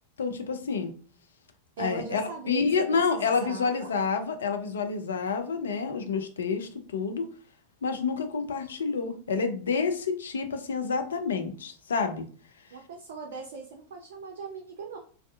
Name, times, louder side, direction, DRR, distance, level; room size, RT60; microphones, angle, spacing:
voice 1, 0.2-0.9 1.8-7.3 7.8-12.2, left 5 dB, 65° left, 7 dB, 0.4 m, -28 dB
voice 2, 1.8-2.6 2.9-3.9 12.7-15.0, right 5 dB, 60° right, 0 dB, 0.4 m, -40 dB
2.4 x 2.3 x 2.2 m, 0.43 s
figure-of-eight pair, 90°, 0 cm